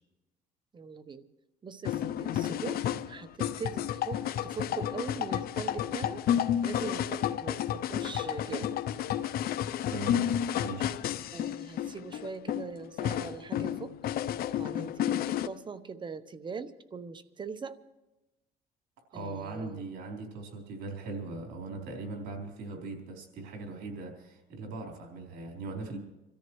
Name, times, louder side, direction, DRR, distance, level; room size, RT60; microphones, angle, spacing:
voice 1, 0.7-1.3 1.6-2.8 3.1-6.2 6.6-8.8 11.3-13.9 14.5-17.8 19.1-19.8, right 5 dB, 30° right, 11 dB, 0.9 m, -41 dB
sound 1, 1.8-15.5, left 10 dB, 65° left, 0.6 m, -31 dB
voice 2, 9.9-10.3 10.6-11.0 19.1-26.0, right 3 dB, 75° right, 0 dB, 3.8 m, -39 dB
25.5 x 14.0 x 3.2 m, 1.0 s
cardioid pair, 110°, 17 cm